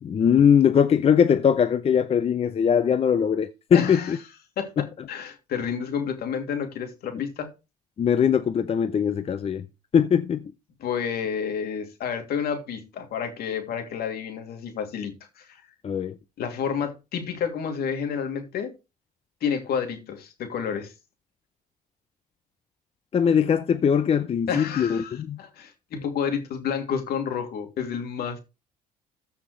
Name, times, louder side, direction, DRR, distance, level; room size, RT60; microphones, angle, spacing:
voice 1, 0.0-4.2 4.8-4.9 8.0-9.6 9.9-10.5 15.8-16.1 23.1-25.4, left 7 dB, 35° left, 0.6 m, -21 dB
voice 2, 3.7-4.2 4.6-7.5 10.8-15.6 16.4-18.7 19.4-20.9 24.5-28.4, left 7 dB, 70° left, 2.8 m, -30 dB
14.5 x 5.8 x 3.2 m
cardioid pair, 110°, 17 cm